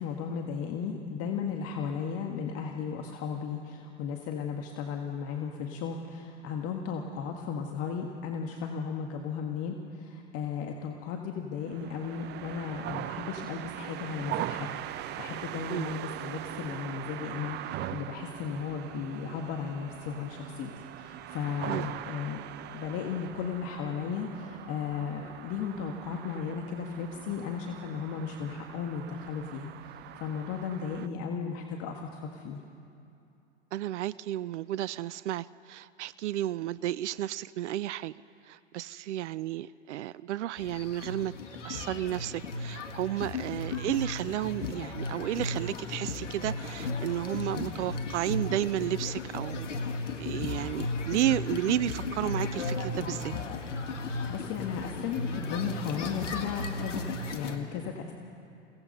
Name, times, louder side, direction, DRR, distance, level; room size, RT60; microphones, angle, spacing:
voice 1, 0.0-32.6 54.3-58.1, left 6 dB, 40° left, 2 dB, 1.8 m, -35 dB
sound 1, 11.6-31.1, right 13 dB, 30° right, 0.6 m, -41 dB
voice 2, 33.7-38.1 38.5-41.3 41.6-49.7 50.2-53.3, right 13 dB, 70° right, 19 dB, 0.6 m, -32 dB
sound 2, 40.6-57.6, left 3 dB, 80° left, 2.0 m, -35 dB
29.5 x 17.5 x 5.5 m, 2.7 s
hypercardioid pair, 100°, 36 cm